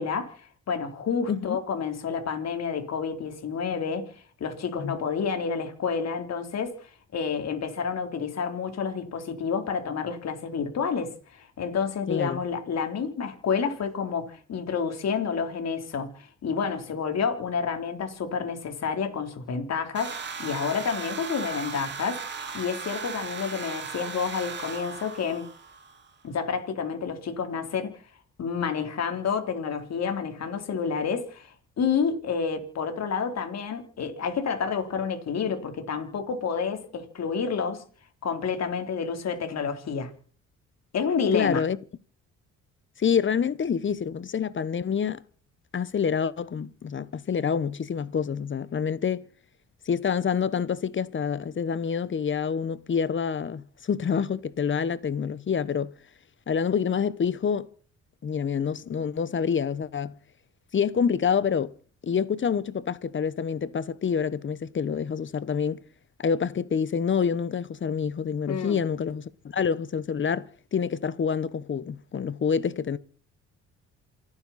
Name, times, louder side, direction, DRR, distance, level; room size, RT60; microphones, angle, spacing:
voice 1, 0.0-20.1 20.4-22.2 22.5-25.5 26.2-27.9 28.4-37.8 38.2-40.1 40.9-41.6 68.5-68.8, left 6 dB, 60° left, 3.6 m, -29 dB
voice 2, 1.3-1.6 4.8-4.9 12.1-12.4 41.3-41.8 43.0-45.2 45.7-49.2 49.9-55.9 56.5-57.7 58.2-60.1 60.7-61.7 62.0-65.8 66.2-73.0, left 7 dB, 40° left, 1.0 m, -27 dB
sound 1, 19.9-26.1, right 5 dB, 35° right, 4.4 m, -37 dB
28.5 x 9.9 x 4.2 m
cardioid pair, 90°, 30 cm